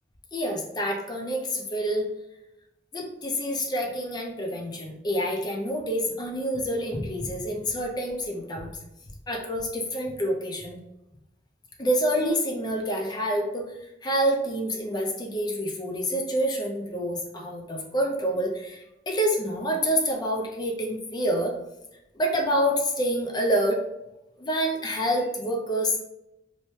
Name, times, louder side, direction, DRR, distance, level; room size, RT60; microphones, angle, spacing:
voice 1, 0.3-2.1 2.9-8.7 9.3-10.8 11.8-13.6 14.0-21.5 22.1-23.8 24.4-26.0, equal, 25° left, 1 dB, 0.5 m, -27 dB
2.7 x 2.1 x 3.1 m, 0.89 s
head